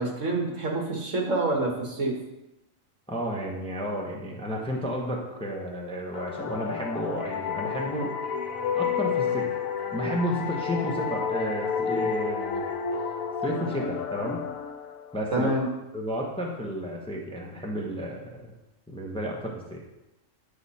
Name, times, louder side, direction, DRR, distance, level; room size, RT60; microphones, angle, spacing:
voice 1, 0.0-2.2 15.3-15.7, right 2 dB, 65° right, 0 dB, 1.9 m, -27 dB
voice 2, 3.1-8.1 8.7-9.5 9.9-12.6 13.4-14.4 15.1-15.5 15.9-18.5 18.9-19.8, equal, 5° left, -1 dB, 0.9 m, -32 dB
sound 1, 6.1-15.5, left 6 dB, 90° left, 1.2 m, -31 dB
9.4 x 5.0 x 4.2 m, 0.96 s
omnidirectional pair, 1.4 m